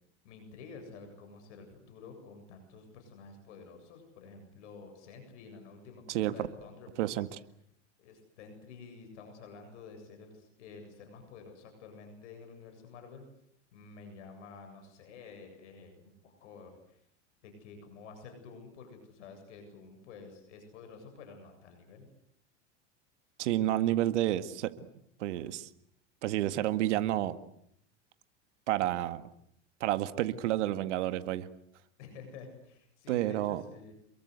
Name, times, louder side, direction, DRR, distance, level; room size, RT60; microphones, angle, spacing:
voice 1, 0.2-7.2 8.0-13.2 13.7-17.0 17.4-22.1 26.5-26.6 32.0-33.9, left 4 dB, 75° left, 5 dB, 7.8 m, -50 dB
voice 2, 7.0-7.3 23.4-24.7 25.2-25.7 26.2-27.4 28.7-29.2 29.8-31.5 33.1-33.6, right 14 dB, 75° right, 12 dB, 1.9 m, -30 dB
28.5 x 22.5 x 8.1 m, 0.72 s
hypercardioid pair, 105°, 36 cm